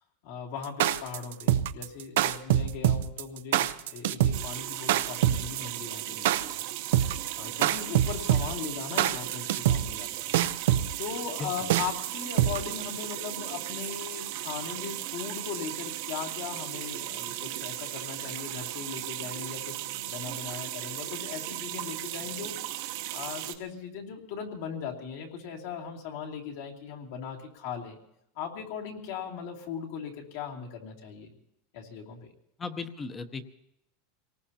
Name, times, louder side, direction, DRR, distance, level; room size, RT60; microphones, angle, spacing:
voice 1, 0.2-10.3 11.0-22.6 23.1-28.0 28.3-31.3 31.7-32.3, left 7 dB, 70° left, -1 dB, 2.8 m, -39 dB
sound 1, 0.6-12.9, right 12 dB, 80° right, 0.5 m, -25 dB
sound 2, 4.3-23.5, right 14 dB, 65° right, 1.0 m, -36 dB
voice 2, 11.4-11.7 32.6-33.4, left 4 dB, 20° left, 9 dB, 0.8 m, -37 dB
26.0 x 19.0 x 2.9 m, 0.79 s
supercardioid pair, 150°, 0 cm